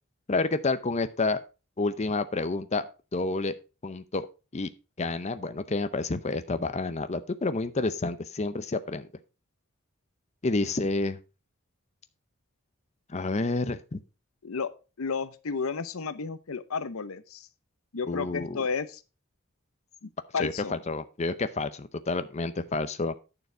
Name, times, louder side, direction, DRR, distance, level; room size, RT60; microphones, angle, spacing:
voice 1, 0.3-1.4 1.8-2.9 3.1-3.6 3.8-4.3 4.5-4.7 5.0-9.1 10.4-11.2 13.1-14.0 18.1-18.6 20.4-23.1, left 3 dB, 30° left, 12 dB, 0.6 m, -29 dB
voice 2, 15.0-17.5 17.9-19.0 20.0-20.8, left 5 dB, 90° left, 14 dB, 0.7 m, -32 dB
9.3 x 6.9 x 4.4 m, 0.31 s
head